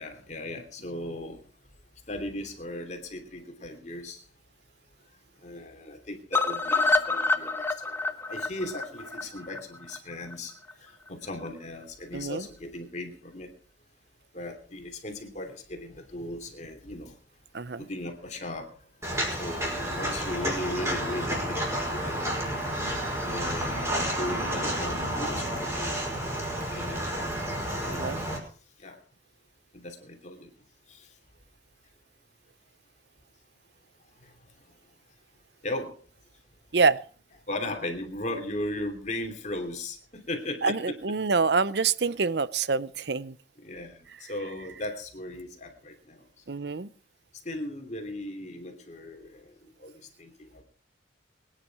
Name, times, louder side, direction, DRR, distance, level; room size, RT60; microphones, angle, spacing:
voice 1, 0.0-1.4 2.1-4.2 5.4-13.5 14.3-17.1 17.8-18.9 19.3-22.2 23.2-26.0 26.4-27.2 27.8-28.4 28.8-29.0 29.7-30.5 30.9-31.1 34.2-34.3 35.6-36.0 37.5-41.0 43.6-46.3 47.4-50.6, left 1 dB, 40° left, 5 dB, 3.0 m, -37 dB
sound 1, 6.3-10.3 10.7-10.8 11.1-11.2 11.5-11.6, left 3 dB, 15° left, 1.1 m, -27 dB
voice 2, 12.1-12.4 17.5-17.8 27.9-28.2 36.7-37.0 40.6-43.4 46.5-46.9, right 4 dB, 60° right, 17 dB, 0.7 m, -26 dB
Walk footsteps, 19.0-28.4, equal, 15° right, 5.4 m, -30 dB
23.0 x 10.0 x 4.8 m, 0.41 s
head